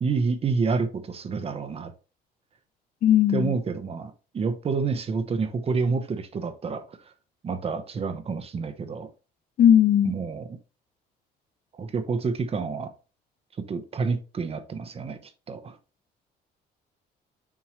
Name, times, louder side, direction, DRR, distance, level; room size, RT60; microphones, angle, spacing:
voice 1, 0.0-1.9 3.3-7.1 7.4-9.1 10.0-10.6 11.8-12.9 13.7-15.8, right 4 dB, 35° right, 1.0 m, -28 dB
voice 2, 3.0-3.5 9.6-10.1, left 10 dB, 50° left, 0.6 m, -18 dB
7.5 x 4.6 x 3.1 m
cardioid pair, 110°, 17 cm